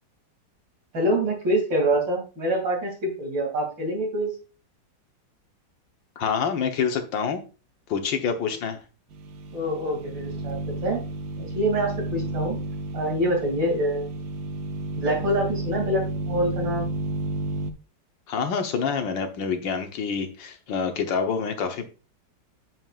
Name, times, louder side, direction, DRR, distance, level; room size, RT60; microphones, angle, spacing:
voice 1, 0.9-4.3 9.5-11.0 11.4-12.6 12.9-14.1 15.0-16.9, right 1 dB, 85° right, 0 dB, 3.4 m, -25 dB
voice 2, 6.2-7.4 7.9-8.8 18.3-21.9, left 6 dB, 80° left, 6 dB, 1.8 m, -27 dB
sound 1, 9.1-17.7, right 2 dB, 65° right, 1.2 m, -32 dB
8.8 x 7.4 x 2.4 m, 0.34 s
omnidirectional pair, 2.0 m